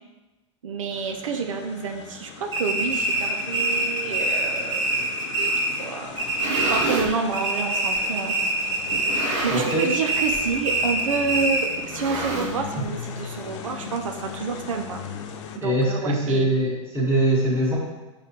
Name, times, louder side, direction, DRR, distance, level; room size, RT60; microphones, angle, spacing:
voice 1, 0.6-4.9 5.4-5.5 5.8-6.2 6.7-8.3 9.4-15.0 15.6-16.5, right 5 dB, 90° right, 4 dB, 0.4 m, -28 dB
sound 1, 0.9-15.6, left 7 dB, 70° left, 0.4 m, -39 dB
sound 2, 2.5-5.9 6.2-7.1 7.3-9.4 9.7-11.8, right 2 dB, 30° right, 1.3 m, -25 dB
sound 3, 6.1-7.2 7.9-8.0 8.9-9.9 10.2-10.5 10.8-10.9 11.8-12.9, right 2 dB, 70° right, 0.8 m, -29 dB
voice 2, 9.5-9.9 12.7-12.8 15.6-17.8, right 1 dB, 15° right, -5 dB, 1.5 m, -22 dB
6.4 x 2.3 x 2.8 m, 1.1 s
hypercardioid pair, 100°, 16 cm